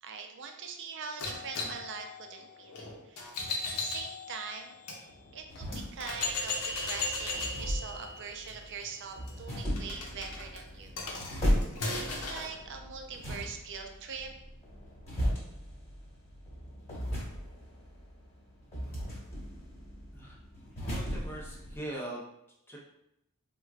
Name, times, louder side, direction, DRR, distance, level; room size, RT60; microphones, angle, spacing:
voice 1, 0.0-4.7 5.3-11.0 11.9-14.3, right 5 dB, 55° right, 4 dB, 0.4 m, -43 dB
sound 1, 1.2-5.0 5.6-5.7 6.0-12.5, left 3 dB, 80° left, 0.7 m, -37 dB
sound 2, 5.1-21.8, equal, 25° left, 1.3 m, -37 dB
voice 2, 20.8-22.2 22.7-22.8, right 1 dB, 10° left, -3 dB, 0.6 m, -41 dB
4.4 x 2.2 x 2.3 m, 0.83 s
head